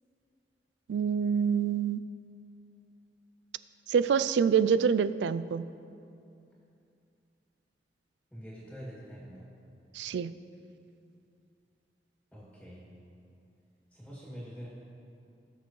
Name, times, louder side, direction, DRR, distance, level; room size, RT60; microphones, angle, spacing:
voice 1, 0.9-2.1 3.9-5.7 10.0-10.3, right 7 dB, 85° right, 15 dB, 0.3 m, -26 dB
voice 2, 8.3-9.5 12.3-12.9 13.9-14.7, equal, ahead, -7 dB, 2.2 m, -45 dB
19.5 x 6.7 x 3.1 m, 2.6 s
head